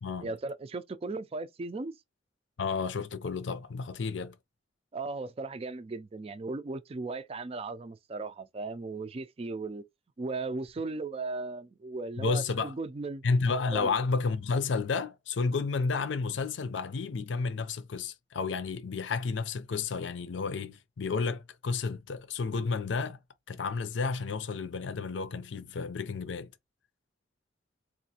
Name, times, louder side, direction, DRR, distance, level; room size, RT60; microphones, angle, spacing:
voice 1, 0.2-1.9 4.9-9.8 10.2-13.2 13.7-13.9, right 3 dB, 30° right, 0.4 m, -37 dB
voice 2, 2.6-4.4 12.2-12.7 13.2-23.2 23.5-26.5, left 4 dB, 80° left, 0.5 m, -31 dB
4.0 x 2.5 x 2.8 m
head